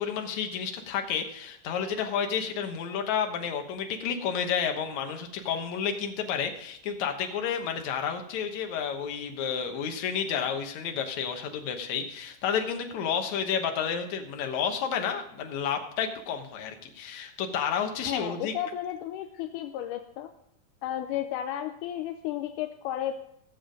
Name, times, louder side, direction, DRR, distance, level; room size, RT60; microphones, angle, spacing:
voice 1, 0.0-18.5, left 7 dB, 65° left, 5 dB, 2.2 m, -31 dB
voice 2, 18.1-20.3 20.8-23.1, left 11 dB, 80° left, 6 dB, 1.9 m, -33 dB
15.5 x 7.2 x 5.2 m, 0.74 s
omnidirectional pair, 4.2 m